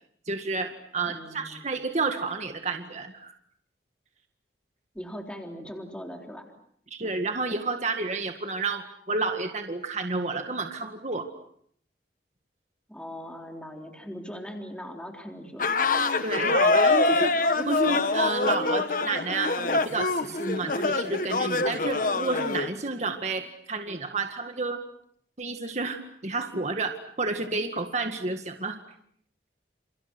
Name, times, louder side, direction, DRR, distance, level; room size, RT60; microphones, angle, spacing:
voice 1, 0.3-3.3 6.9-11.2 16.2-24.8 25.4-28.8, right 3 dB, 40° right, 5 dB, 1.9 m, -30 dB
voice 2, 1.1-1.7 4.9-6.4 12.9-15.7, equal, 5° left, 2 dB, 3.7 m, -40 dB
sound 1, 15.6-22.7, left 3 dB, 50° left, 1.5 m, -25 dB
30.0 x 29.0 x 6.2 m, 0.66 s
head